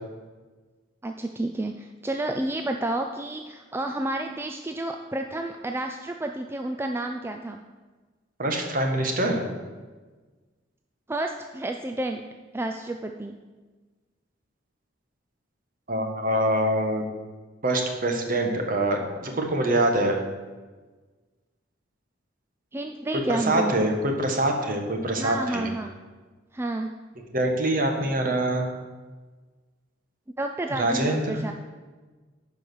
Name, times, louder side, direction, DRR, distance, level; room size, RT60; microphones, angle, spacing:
voice 1, 1.0-7.6 11.1-12.2 12.5-13.4 22.7-24.0 25.2-25.9 26.5-26.9 30.4-31.5, right 2 dB, 10° right, 4 dB, 0.4 m, -30 dB
voice 2, 8.4-9.4 15.9-17.0 17.6-20.2 23.3-25.7 27.3-28.7 30.8-31.4, right 1 dB, 45° right, 3 dB, 1.4 m, -24 dB
10.5 x 4.9 x 6.2 m, 1.3 s
head